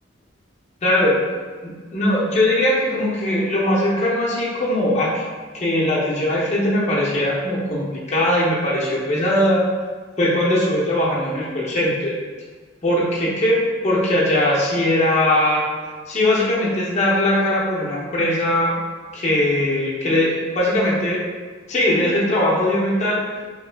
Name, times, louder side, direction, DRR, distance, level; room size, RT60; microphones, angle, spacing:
voice 1, 0.8-1.2 1.6-5.2 5.5-9.6 10.2-12.1 12.8-13.6 13.8-15.6 16.1-18.7 19.1-21.2 21.7-23.2, left 1 dB, 35° left, -5 dB, 0.7 m, -20 dB
3.0 x 2.3 x 3.3 m, 1.5 s
head